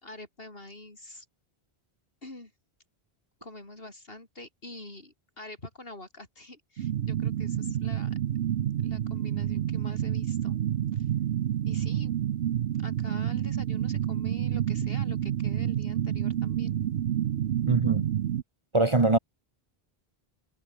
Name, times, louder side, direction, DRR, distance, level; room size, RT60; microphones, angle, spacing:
voice 1, 0.0-1.3 2.2-2.5 3.4-8.2 8.8-10.6 10.9-11.1 11.6-12.1 12.8-16.8, left 2 dB, 65° left, 4.8 m, -45 dB
sound 1, 6.8-18.4, right 10 dB, 80° right, 0.9 m, -29 dB
voice 2, 17.7-18.1 18.7-19.2, right 2 dB, 30° right, 1.1 m, -22 dB
omnidirectional pair, 1.1 m